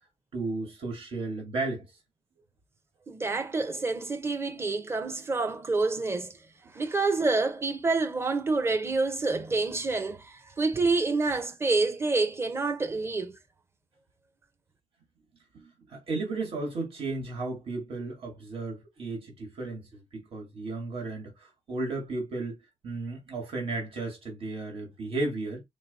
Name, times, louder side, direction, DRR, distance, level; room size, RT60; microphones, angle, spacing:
voice 1, 0.3-1.9 15.5-25.6, right 3 dB, 75° right, 1.8 m, -34 dB
voice 2, 3.1-6.4 6.7-13.4, right 3 dB, 25° right, 0.7 m, -28 dB
4.0 x 3.0 x 4.0 m
wide cardioid pair, 175°, 10 cm